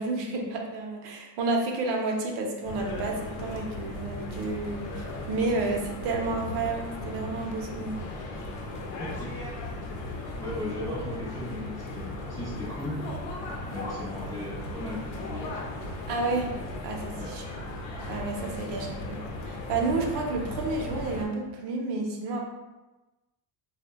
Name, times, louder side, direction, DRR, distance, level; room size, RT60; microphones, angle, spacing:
voice 1, 0.0-8.0 16.1-16.5 16.8-17.4 18.1-22.4, right 3 dB, 60° right, 1 dB, 0.6 m, -30 dB
sound 1, 2.6-21.2, left 1 dB, 85° left, 0.7 m, -37 dB
voice 2, 9.0-9.4 10.4-13.0 13.7-15.5 17.1-17.3, left 1 dB, 10° left, -10 dB, 0.3 m, -37 dB
2.1 x 2.1 x 3.4 m, 1.1 s
cardioid pair, 150°, 46 cm